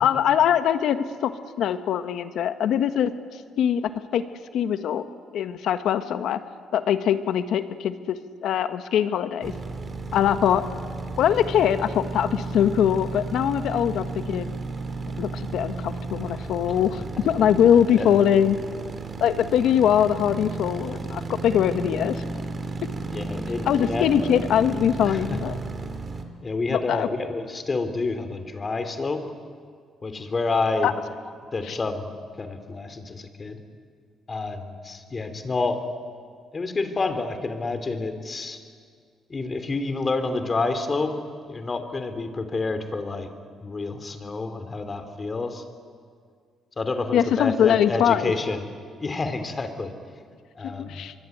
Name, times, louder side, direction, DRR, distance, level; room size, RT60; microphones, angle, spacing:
voice 1, 0.0-1.3 1.6-3.1 3.6-4.2 4.5-5.0 5.3-6.4 6.7-9.5 10.1-10.6 11.2-14.5 15.2-18.6 19.2-22.2 23.6-25.6 26.7-27.1 30.8-30.9 31.7-31.8 47.1-48.3 50.6-51.1, left 9 dB, 75° left, 10 dB, 1.4 m, -22 dB
sound 1, 9.4-26.2, right 3 dB, 35° right, 3.0 m, -33 dB
voice 2, 23.1-24.4 25.0-25.4 26.4-29.2 30.0-30.9 31.5-33.6 34.3-35.8 36.5-38.6 39.3-41.1 41.5-43.3 43.6-45.6 46.8-48.7 49.0-49.9 50.5-51.1, left 3 dB, 35° left, 8 dB, 3.0 m, -29 dB
24.5 x 23.0 x 9.6 m, 2.1 s
cardioid pair, 90°, 0 cm